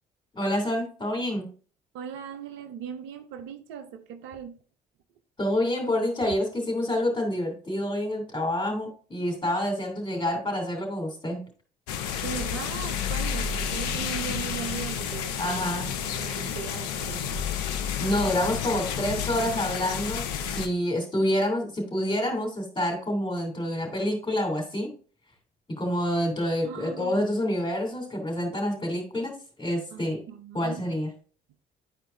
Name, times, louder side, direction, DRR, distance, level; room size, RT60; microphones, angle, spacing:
voice 1, 0.3-1.5 5.4-11.4 15.4-15.9 18.0-24.9 25.8-29.3 29.6-30.2 30.5-31.1, left 1 dB, 25° left, 2.9 m, -27 dB
voice 2, 1.9-4.6 12.2-17.3 26.6-27.3 29.9-30.8, right 8 dB, 70° right, 0.7 m, -39 dB
sound 1, 11.9-20.7, left 8 dB, 80° left, 0.6 m, -30 dB
10.5 x 4.6 x 2.6 m
hypercardioid pair, 50°, 20 cm